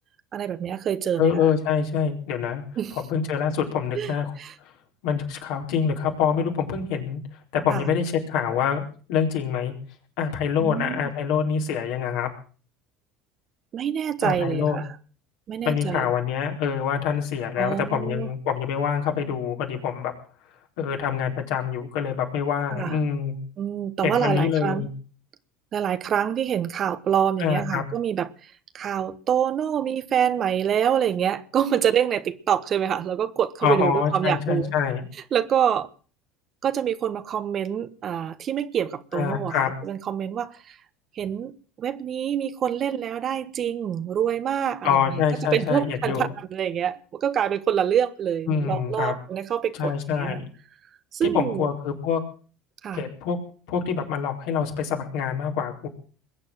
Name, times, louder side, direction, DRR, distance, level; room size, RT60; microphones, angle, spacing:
voice 1, 0.3-1.5 2.8-3.0 3.9-4.1 4.4-4.5 7.7-7.9 10.6-11.1 13.7-14.9 15.5-16.1 17.6-18.3 22.7-23.0 23.6-24.9 25.7-34.7 35.3-35.9 36.6-40.8 41.1-41.5 41.8-45.2 45.5-50.4 51.1-51.7 52.8-53.0, right 9 dB, 45° right, 1.3 m, -26 dB
voice 2, 1.2-2.6 2.9-4.3 5.0-7.2 7.5-8.8 9.1-9.7 10.2-12.3 14.2-14.8 15.6-20.1 20.8-23.4 24.0-24.9 27.4-27.8 33.6-35.0 39.1-39.7 44.8-46.3 48.5-49.2 49.8-50.4 51.2-52.2 52.9-53.4 53.7-55.9, left 7 dB, 70° left, 4.4 m, -25 dB
21.5 x 8.4 x 7.6 m
hypercardioid pair, 75°, 0 cm